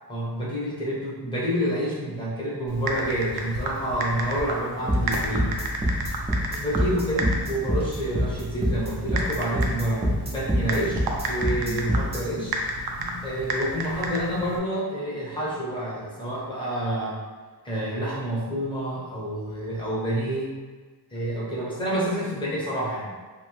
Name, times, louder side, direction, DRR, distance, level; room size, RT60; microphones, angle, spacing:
voice 1, 0.1-5.5 6.6-11.0 11.3-12.5 12.9-17.2 17.6-20.6 21.1-23.1, right 1 dB, 10° left, -7 dB, 0.9 m, -28 dB
Typing, 2.7-14.6, right 1 dB, 65° right, 0.5 m, -32 dB
sound 1, 4.9-12.2, equal, 15° right, 0.6 m, -25 dB
3.0 x 2.1 x 3.1 m, 1.4 s
wide cardioid pair, 120°, 40 cm